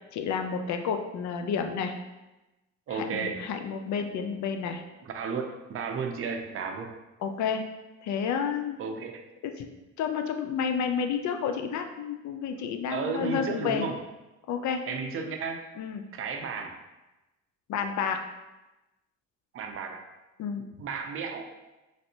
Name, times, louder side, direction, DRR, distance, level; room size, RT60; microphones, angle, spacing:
voice 1, 0.1-1.9 2.9-4.8 7.2-7.6 8.0-8.8 9.4-9.7 10.0-13.9 14.5-14.8 15.8-16.0 17.7-18.2 20.4-20.6, left 6 dB, 70° left, 6 dB, 0.4 m, -30 dB
voice 2, 2.9-3.4 5.0-6.9 8.8-9.2 12.9-14.0 14.9-15.6 16.1-16.8 19.5-20.0 20.6-21.5, right 5 dB, 45° right, 4 dB, 0.5 m, -33 dB
3.3 x 2.6 x 2.7 m, 1.0 s
cardioid pair, 90°, 30 cm